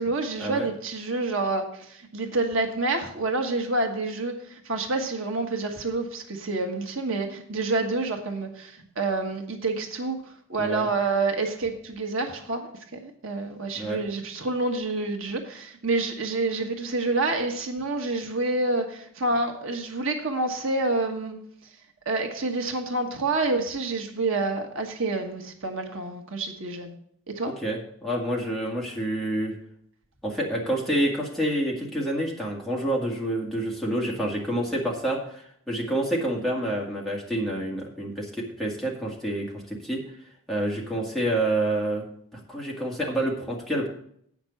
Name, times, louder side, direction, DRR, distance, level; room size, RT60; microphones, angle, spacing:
voice 1, 0.0-10.2 10.5-21.4 22.0-26.9 27.3-27.5, right 2 dB, 70° right, 4 dB, 1.3 m, -28 dB
voice 2, 27.4-29.5 30.2-40.0 40.5-42.0 42.3-43.9, right 1 dB, ahead, -3 dB, 2.0 m, -28 dB
8.8 x 6.0 x 7.0 m, 0.66 s
head